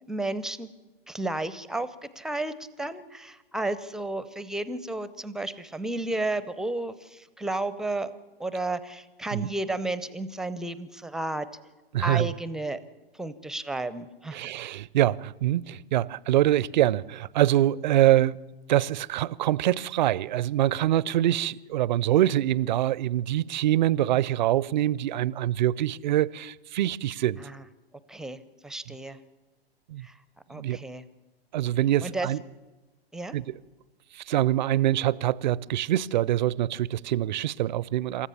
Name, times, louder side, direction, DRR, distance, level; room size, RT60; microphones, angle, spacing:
voice 1, 0.1-0.7 1.1-8.1 8.4-11.5 12.0-12.8 13.1-14.5 27.4-27.6 28.1-29.2 30.0-30.2 30.5-31.1 32.0-32.3 33.1-33.4, right 2 dB, ahead, 0.6 m, -32 dB
voice 2, 11.9-12.3 14.3-18.4 18.7-27.4 29.9-30.1 30.5-30.8 31.5-32.4 33.3-33.5 34.1-38.3, right 13 dB, 50° right, 0.6 m, -24 dB
27.0 x 14.5 x 7.0 m
figure-of-eight pair, 115°, 31 cm